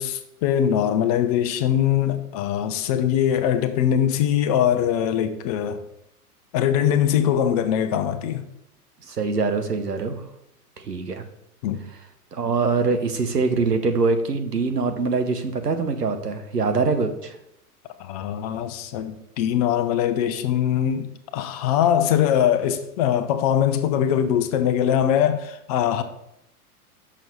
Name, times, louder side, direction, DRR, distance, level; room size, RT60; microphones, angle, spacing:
voice 1, 0.0-5.8 6.5-8.5 11.6-11.8 18.0-21.1 21.3-26.0, left 10 dB, 25° left, 0.5 m, -22 dB
voice 2, 9.1-10.2 10.8-11.2 12.3-17.4, right 4 dB, 85° right, 1.0 m, -23 dB
6.4 x 6.0 x 4.1 m
figure-of-eight pair, 105°, 46 cm